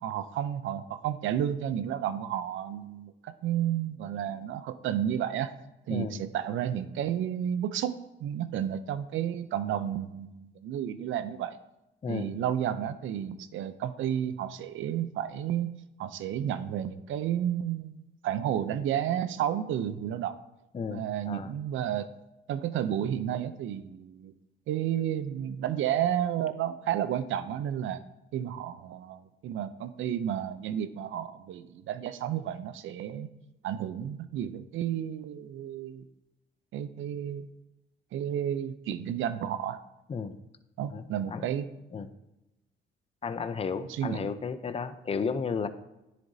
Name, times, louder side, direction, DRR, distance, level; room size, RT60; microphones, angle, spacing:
voice 1, 0.0-5.5 5.9-11.6 12.1-15.7 16.0-20.3 20.9-22.1 22.5-24.3 24.7-28.0 28.3-33.3 33.6-36.1 36.7-37.5 38.1-39.8 40.8-41.7 43.9-44.2, right 10 dB, 80° right, 12 dB, 0.6 m, -31 dB
voice 2, 5.9-6.2 12.0-12.4 20.7-21.5 40.1-40.4 40.9-41.5 41.9-42.1 43.2-45.7, left 5 dB, 30° left, 11 dB, 0.6 m, -33 dB
10.0 x 7.5 x 2.7 m, 0.96 s
cardioid pair, 90°, 20 cm